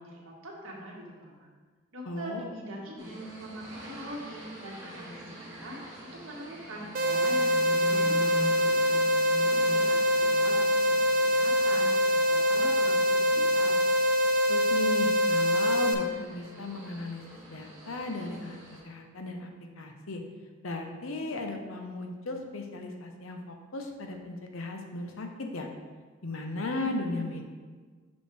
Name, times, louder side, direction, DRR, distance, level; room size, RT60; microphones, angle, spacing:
voice 1, 0.0-1.5 1.9-10.5 10.8-11.0 11.3-11.9 12.3-13.8, equal, 80° right, -3 dB, 1.5 m, -43 dB
voice 2, 2.1-2.5 14.5-18.6 18.8-20.2 20.6-25.7 26.2-27.4, left 2 dB, 80° left, 4 dB, 0.8 m, -36 dB
sound 1, 3.0-18.8, equal, 15° right, 1.4 m, -44 dB
sound 2, 6.9-15.9, left 1 dB, 40° right, 0.5 m, -24 dB
6.3 x 5.2 x 3.4 m, 1.5 s
head